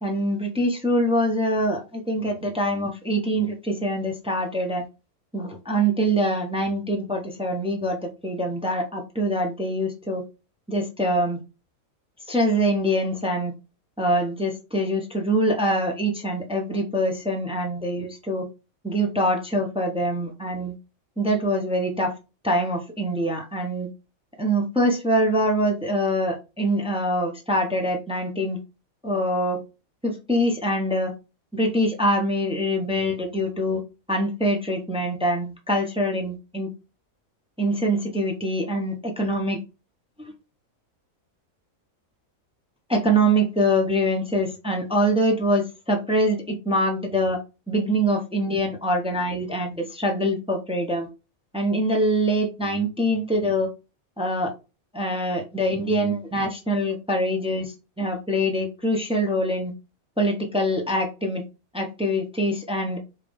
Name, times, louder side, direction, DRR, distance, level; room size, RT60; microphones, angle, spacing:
voice 1, 0.0-4.8 5.3-10.2 10.7-11.4 12.3-13.5 14.0-18.5 18.8-20.7 21.2-22.1 22.4-23.9 24.4-28.6 29.0-29.6 30.0-31.1 31.5-33.8 34.1-36.7 37.6-39.6 42.9-47.4 47.7-51.1 51.5-53.7 54.2-54.5 54.9-59.7 60.2-61.4 61.7-63.0, equal, 5° right, 2 dB, 0.8 m, -24 dB
5.1 x 2.7 x 3.5 m, 0.29 s
omnidirectional pair, 1.4 m